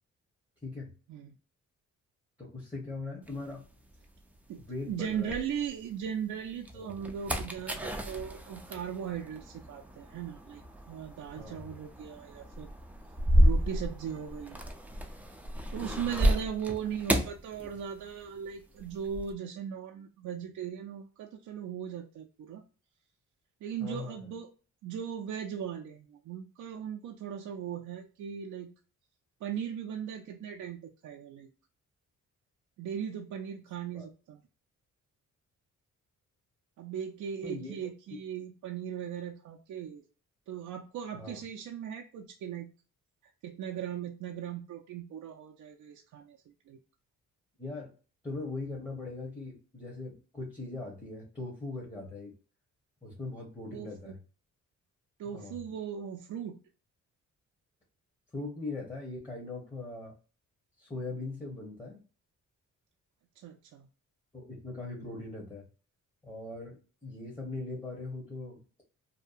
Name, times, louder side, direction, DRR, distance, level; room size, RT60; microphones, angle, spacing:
voice 1, 0.6-0.9 2.4-3.6 4.6-5.3 6.7-6.9 11.4-11.7 15.8-16.0 23.8-24.3 33.9-34.1 37.4-37.7 41.1-41.4 47.6-47.9 48.2-52.3 53.0-54.2 55.3-55.6 58.3-60.1 60.8-62.0 64.3-65.7 66.2-68.6, left 3 dB, 15° left, -2 dB, 0.9 m, -40 dB
sound 1, 3.3-6.0 6.5-18.3 18.5-19.3, equal, 5° right, 0.4 m, -31 dB
voice 2, 4.5-10.6 10.9-12.7 13.4-14.6 15.7-22.6 23.6-24.5 24.8-28.7 29.4-31.5 32.8-34.4 36.8-40.0 40.5-42.7 43.4-46.8 53.7-54.1 55.2-56.6 63.4-63.9, right 8 dB, 70° right, 1 dB, 0.4 m, -38 dB
2.7 x 2.1 x 2.4 m, 0.37 s
cardioid pair, 95°, 31 cm